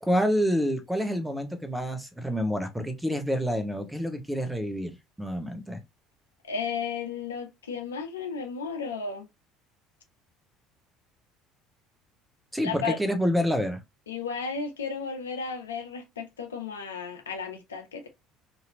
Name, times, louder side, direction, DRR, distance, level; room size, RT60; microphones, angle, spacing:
voice 1, 0.0-5.8 12.5-13.8, equal, 5° right, 0.9 m, -28 dB
voice 2, 6.5-9.3 12.6-13.0 14.1-18.1, left 5 dB, 80° left, 0.6 m, -34 dB
2.9 x 2.7 x 2.7 m
figure-of-eight pair, 60°, 0 cm